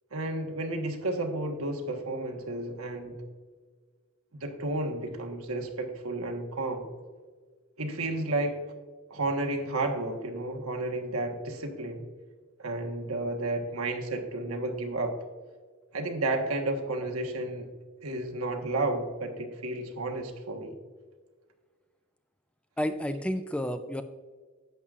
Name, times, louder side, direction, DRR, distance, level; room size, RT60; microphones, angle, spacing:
voice 1, 0.1-3.2 4.4-6.9 7.8-8.6 9.1-12.1 12.6-15.2 15.9-17.7 18.0-20.7, right 2 dB, 85° right, 3 dB, 1.3 m, -32 dB
voice 2, 22.8-24.0, equal, 5° left, 9 dB, 0.4 m, -30 dB
11.0 x 8.0 x 2.5 m, 1.5 s
head